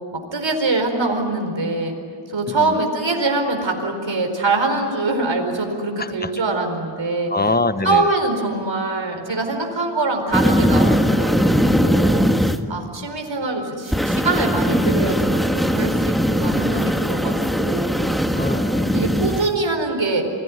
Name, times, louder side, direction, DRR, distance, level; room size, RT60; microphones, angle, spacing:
voice 1, 0.1-2.0 2.3-7.3 7.8-12.2 12.7-18.2 18.9-20.2, right 3 dB, 65° right, 3 dB, 4.6 m, -23 dB
voice 2, 2.5-2.8 6.0-6.3 7.3-8.1 12.1-13.1 16.5-16.8 18.3-18.9, left 3 dB, 20° left, 11 dB, 1.2 m, -26 dB
sound 1, 10.3-12.6 13.9-19.5, equal, ahead, 1.7 m, -19 dB
28.5 x 21.5 x 9.7 m, 2.3 s
wide cardioid pair, 60°, 47 cm